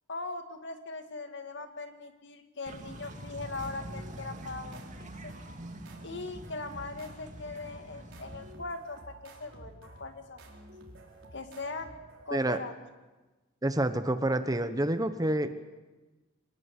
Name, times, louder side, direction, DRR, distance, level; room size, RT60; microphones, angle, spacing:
voice 1, 0.1-5.3 6.0-10.4 11.3-11.9 12.3-12.7, left 3 dB, 60° left, 7 dB, 2.1 m, -40 dB
sound 1, 2.7-8.5, right 1 dB, 40° right, 2.4 m, -45 dB
sound 2, 3.0-12.5, right 1 dB, 70° right, 4.4 m, -51 dB
voice 2, 13.6-15.5, right 1 dB, 20° right, 10 dB, 1.0 m, -28 dB
25.0 x 19.5 x 8.2 m, 1.2 s
head